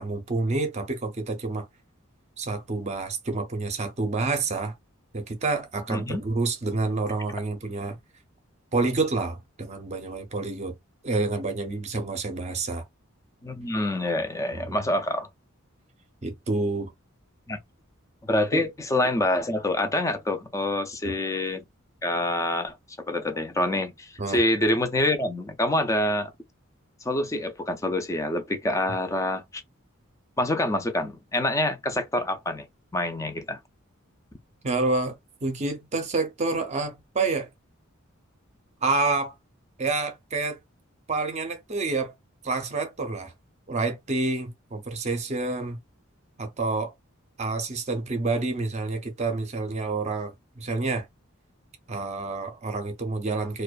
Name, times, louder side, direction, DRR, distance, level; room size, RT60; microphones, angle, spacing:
voice 1, 0.0-1.7 2.4-4.7 5.1-8.0 8.7-10.7 11.0-12.8 14.5-14.8 16.2-16.9 18.5-18.7 21.0-21.1 24.2-24.4 34.6-35.2 35.4-37.5 38.8-39.3 39.8-40.6 41.1-42.1 42.4-43.3 43.7-45.8 46.4-46.9 47.4-51.1 51.9-53.6, right 3 dB, 35° right, 0.6 m, -28 dB
voice 2, 5.9-6.2 13.4-15.3 17.5-17.6 18.2-21.6 22.0-22.7 23.1-26.3 27.0-29.6 30.4-32.7 32.9-33.6, left 1 dB, 15° left, 0.4 m, -26 dB
2.4 x 2.2 x 2.3 m
head